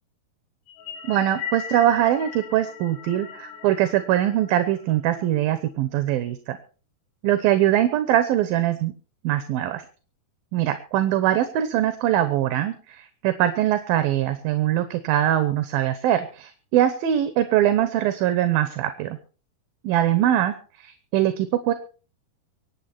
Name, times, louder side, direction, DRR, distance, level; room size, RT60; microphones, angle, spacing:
sound 1, 0.7-5.2, left 8 dB, 80° left, 4.6 m, -38 dB
voice 1, 1.1-6.6 7.2-8.9 9.2-9.8 10.5-19.2 19.8-21.7, right 12 dB, 70° right, 10 dB, 2.6 m, -22 dB
25.0 x 9.5 x 4.4 m, 0.37 s
omnidirectional pair, 4.8 m